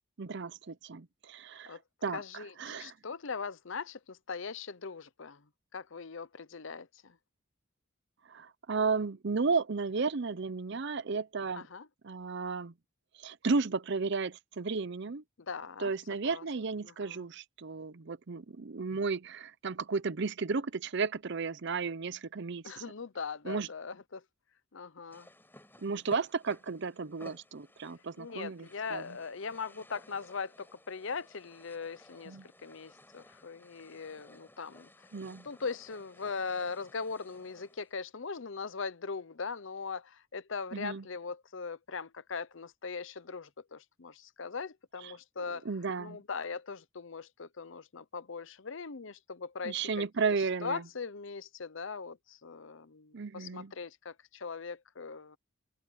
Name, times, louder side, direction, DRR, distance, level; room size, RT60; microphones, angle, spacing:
voice 1, 0.2-2.9 8.3-11.6 12.0-12.7 13.2-15.2 15.8-22.6 23.4-23.7 25.8-29.2 32.3-32.5 35.1-35.5 40.7-41.1 45.0-45.1 45.5-46.2 49.6-50.9 53.1-53.7, right 4 dB, 55° right, 0.6 m, -34 dB
voice 2, 2.1-5.4 5.7-7.1 11.5-11.9 15.5-15.9 16.2-16.4 16.8-17.2 22.6-24.2 24.7-25.3 28.2-32.3 32.6-34.9 35.4-45.7 46.0-50.1 50.6-55.4, left 5 dB, 60° left, 0.7 m, -40 dB
sound 1, 25.1-37.9, left 1 dB, 10° left, 5.4 m, -57 dB
open air
head